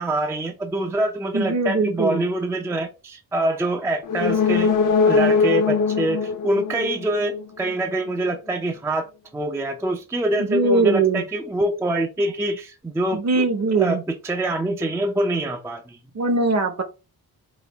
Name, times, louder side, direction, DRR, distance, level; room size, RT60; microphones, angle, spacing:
voice 1, 0.0-4.7 5.0-13.5 13.8-16.0, right 1 dB, 10° right, 0.3 m, -25 dB
voice 2, 1.3-2.2 10.4-11.2 13.1-14.0 16.1-16.8, right 3 dB, 45° right, 0.8 m, -21 dB
sound 1, 4.0-7.7 8.1-8.2, left 5 dB, 55° left, 0.6 m, -21 dB
4.9 x 2.3 x 3.3 m
wide cardioid pair, 170°, 36 cm